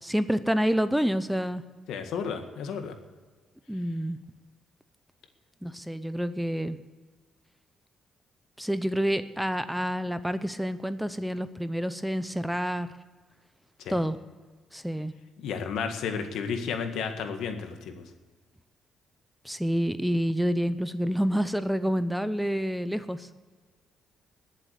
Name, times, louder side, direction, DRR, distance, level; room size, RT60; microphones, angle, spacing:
voice 1, 0.0-1.6 3.7-4.2 5.6-6.8 8.6-12.9 13.9-14.2 14.7-15.1 19.4-23.3, equal, ahead, 12 dB, 0.7 m, -28 dB
voice 2, 1.9-2.9 13.8-14.0 15.4-18.0, left 6 dB, 80° left, 6 dB, 1.8 m, -32 dB
19.5 x 7.5 x 8.0 m, 1.4 s
cardioid pair, 90°, 0 cm